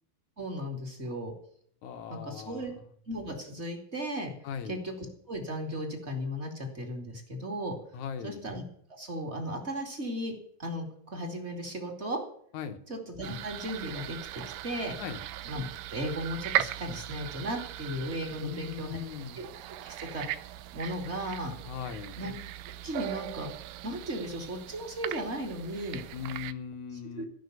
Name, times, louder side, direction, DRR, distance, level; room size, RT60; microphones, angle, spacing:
voice 1, 0.4-1.3 2.1-2.7 3.1-4.3 4.7-7.7 8.2-8.6 9.0-10.3 10.6-12.2 12.9-14.2 14.6-14.9 15.5-15.6 15.9-19.0 19.3-19.5 19.8-20.3 20.7-21.5 22.2-22.3 22.8-23.5 23.8-26.0 27.2-27.3, equal, 20° right, 3 dB, 2.4 m, -35 dB
voice 2, 1.8-2.7 4.4-4.8 7.9-8.4 12.5-12.8 15.0-15.3 18.4-19.4 21.6-22.2 26.1-27.3, left 8 dB, 65° left, 8 dB, 2.3 m, -39 dB
sound 1, 13.2-26.5, right 13 dB, 90° right, 2.6 m, -38 dB
16.0 x 6.3 x 8.2 m, 0.63 s
omnidirectional pair, 4.1 m